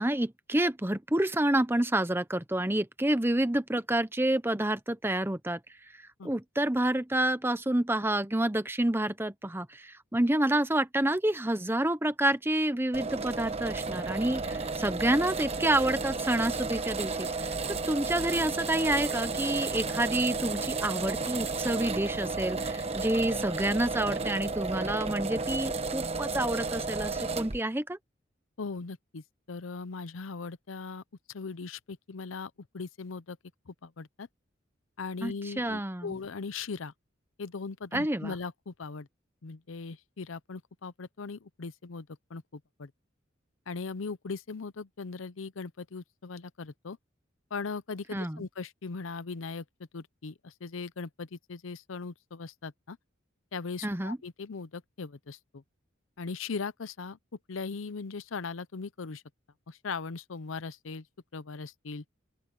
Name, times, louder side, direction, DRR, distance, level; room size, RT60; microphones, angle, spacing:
voice 1, 0.0-5.6 6.2-28.0 35.2-36.2 37.9-38.3 48.1-48.4 53.8-54.2, right 1 dB, 10° right, 0.9 m, -28 dB
sound 1, 12.9-27.6, right 3 dB, 30° right, 1.3 m, -33 dB
voice 2, 28.6-31.0 31.3-33.4 33.7-34.3 35.0-36.9 37.4-39.1 39.4-42.9 43.7-47.0 47.5-49.6 49.9-53.0 53.5-55.6 56.2-57.2 57.5-59.2 59.7-61.1 61.3-62.0, left 4 dB, 90° left, 0.7 m, -39 dB
open air
head